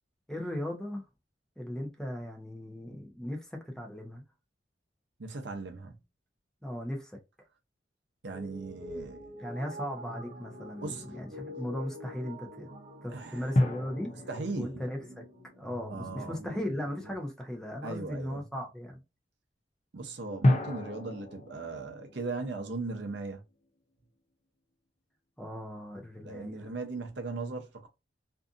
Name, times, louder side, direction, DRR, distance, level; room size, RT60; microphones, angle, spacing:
voice 1, 0.3-1.0 1.6-4.2 6.6-7.2 9.4-12.7 13.0-14.1 14.6-15.2 15.6-19.0 25.4-26.7, equal, 5° left, 0.7 m, -37 dB
voice 2, 5.2-6.0 8.2-9.5 10.8-11.2 13.1-13.6 14.3-14.8 15.9-16.4 17.8-18.5 19.9-23.4 26.2-27.9, right 3 dB, 70° right, 0.6 m, -38 dB
sound 1, 8.3-17.2, left 1 dB, 40° right, 0.8 m, -46 dB
sound 2, 9.2-9.9 13.5-16.4 20.4-23.7, left 1 dB, 40° left, 0.5 m, -32 dB
2.6 x 2.4 x 2.4 m
head